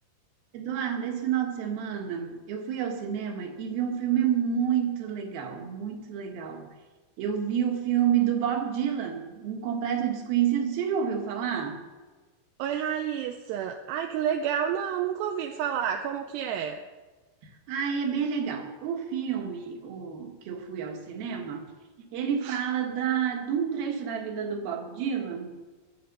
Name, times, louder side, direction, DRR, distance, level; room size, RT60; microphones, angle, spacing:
voice 1, 0.5-6.7 7.2-11.8 17.7-21.7 22.1-25.6, right 8 dB, 60° right, 3 dB, 3.1 m, -29 dB
voice 2, 12.6-16.8 22.4-22.6, right 9 dB, 80° right, 4 dB, 2.5 m, -30 dB
22.0 x 8.6 x 5.4 m, 1.3 s
omnidirectional pair, 5.4 m